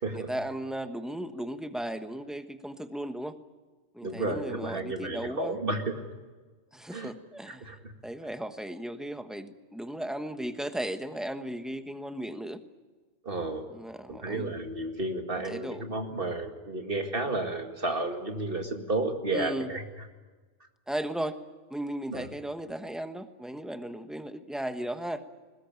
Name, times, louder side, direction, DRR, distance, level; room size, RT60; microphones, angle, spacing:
voice 1, 0.1-3.3 3.9-5.6 6.7-12.6 13.7-14.5 15.5-15.8 19.3-19.7 20.9-21.4 21.7-25.2, right 1 dB, ahead, 8 dB, 1.1 m, -36 dB
voice 2, 4.0-6.0 6.9-7.1 7.5-7.9 13.2-13.7 14.1-19.8 22.1-22.2, right 2 dB, 50° right, 4 dB, 2.3 m, -32 dB
22.0 x 20.0 x 9.1 m, 1.3 s
omnidirectional pair, 1.2 m